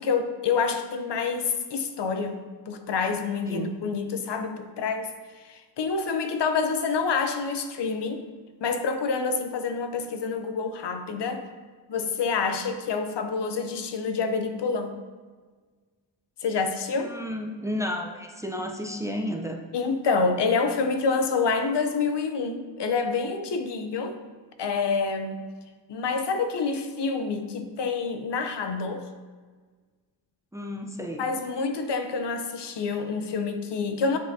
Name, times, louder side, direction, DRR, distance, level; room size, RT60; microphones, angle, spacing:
voice 1, 0.0-5.1 5.4-8.2 8.6-11.5 11.9-14.9 16.4-17.1 19.7-24.2 24.6-25.5 25.9-29.0 31.2-34.2, left 4 dB, 65° left, 8 dB, 0.7 m, -27 dB
voice 2, 3.4-3.7 17.0-19.6 30.5-31.3, equal, 5° right, 2 dB, 0.5 m, -32 dB
7.4 x 5.7 x 2.7 m, 1.5 s
cardioid pair, 85°, 45 cm